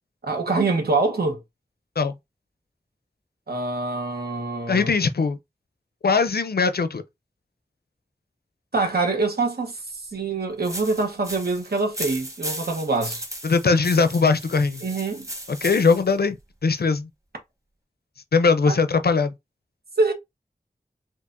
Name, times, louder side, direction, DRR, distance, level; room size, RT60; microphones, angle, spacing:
voice 1, 0.2-1.4 3.5-4.9 8.7-13.2 14.8-15.3 18.7-18.8 20.0-20.1, right 3 dB, 85° right, 1.0 m, -25 dB
voice 2, 4.7-5.4 6.0-7.0 13.4-14.8 15.6-16.4 16.6-17.1 18.3-19.3, left 4 dB, 80° left, 0.5 m, -20 dB
sound 1, 10.6-16.1, right 1 dB, 20° right, 1.0 m, -36 dB
4.6 x 2.5 x 2.6 m
wide cardioid pair, 45°, 16 cm